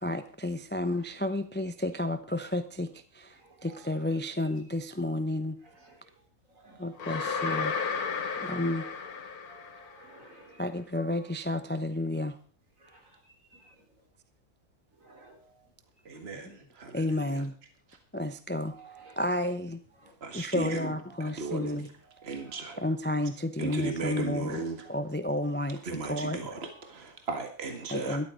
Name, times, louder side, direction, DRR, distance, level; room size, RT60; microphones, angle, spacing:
voice 1, 0.0-5.6 6.8-7.7 8.4-8.8 10.6-12.4 16.4-16.5 16.9-17.6 18.1-18.7 19.2-19.8 20.3-21.9 22.8-24.6 24.9-26.4 27.9-28.3, left 1 dB, 10° left, 10 dB, 0.6 m, -31 dB
voice 2, 3.3-4.4 5.6-6.1 6.5-8.1 8.5-8.9 9.5-10.6 11.0-11.6 12.8-14.0 15.0-15.7 16.1-16.2 18.7-19.2 20.0-20.1 20.6-20.8 21.1-21.4 22.0-23.3 23.6-23.7 24.8-25.0 25.6-25.9 26.5-26.9 27.8-28.0, right 3 dB, 60° right, 2 dB, 4.0 m, -55 dB
sound 1, 7.0-10.1, left 5 dB, 85° left, 1.7 m, -33 dB
voice 3, 16.1-17.4 20.2-20.9 21.2-21.8 22.2-22.8 23.6-24.8 25.9-28.2, right 3 dB, 45° right, 6 dB, 2.1 m, -36 dB
13.0 x 12.0 x 5.0 m, 0.39 s
omnidirectional pair, 1.6 m